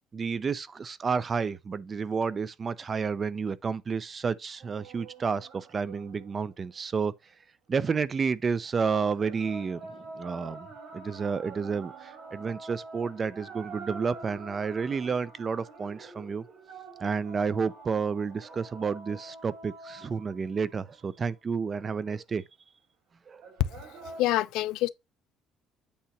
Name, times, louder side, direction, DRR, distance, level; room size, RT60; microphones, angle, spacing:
voice 1, 0.1-7.1 7.7-10.7 10.9-16.4 17.0-22.4 23.3-23.5, right 5 dB, 25° right, 0.4 m, -30 dB
sound 1, 4.6-7.1 8.9-21.2 23.4-24.2, right 3 dB, 55° right, 4.0 m, -46 dB
voice 2, 24.2-24.9, left 15 dB, 85° left, 0.5 m, -26 dB
8.5 x 2.9 x 5.7 m
cardioid pair, 175°, 0 cm